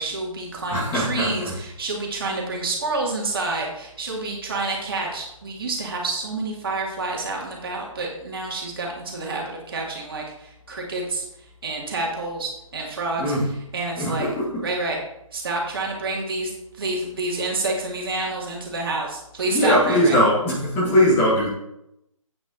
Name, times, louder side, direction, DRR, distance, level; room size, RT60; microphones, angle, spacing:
voice 1, 0.0-11.2 11.6-14.3 14.6-15.0 15.3-20.2, right 2 dB, 40° right, -1 dB, 2.4 m, -28 dB
voice 2, 0.7-1.3 13.2-13.5 14.0-14.4 19.5-21.5, equal, 10° left, -6 dB, 2.0 m, -20 dB
8.6 x 8.3 x 3.9 m, 0.82 s
figure-of-eight pair, 145°, 18 cm